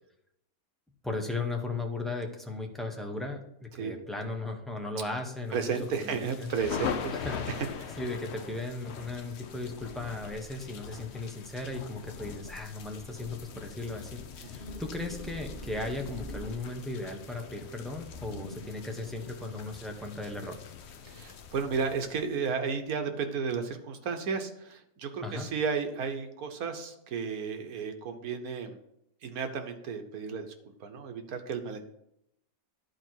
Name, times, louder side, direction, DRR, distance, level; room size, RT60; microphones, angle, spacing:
voice 1, 1.0-5.8 6.0-6.5 7.1-7.5 8.0-20.6 25.2-25.5, left 2 dB, ahead, 2 dB, 0.8 m, -36 dB
sound 1, 5.5-22.5, left 7 dB, 55° left, 0.8 m, -42 dB
voice 2, 5.5-7.1 7.6-7.9 14.6-14.7 21.0-28.8 29.2-31.9, right 5 dB, 85° right, 6 dB, 1.5 m, -33 dB
sound 2, 14.5-17.0 17.9-18.9, left 1 dB, 40° left, 1.8 m, -43 dB
11.0 x 4.7 x 4.5 m, 0.79 s
omnidirectional pair, 1.5 m